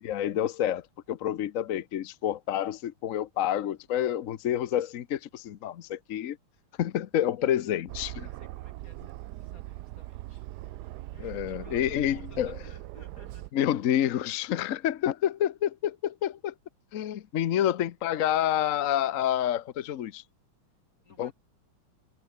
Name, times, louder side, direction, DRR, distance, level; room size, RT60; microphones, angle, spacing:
voice 1, 0.0-6.4 6.8-8.3 11.2-12.6 13.5-16.5 16.9-20.2 21.2-21.3, left 11 dB, 65° left, 0.8 m, -28 dB
voice 2, 7.4-7.8 8.2-13.5 21.0-21.3, left 2 dB, 40° left, 6.0 m, -57 dB
Aircraft, 7.9-13.5, right 16 dB, 80° right, 0.9 m, -41 dB
omnidirectional pair, 2.3 m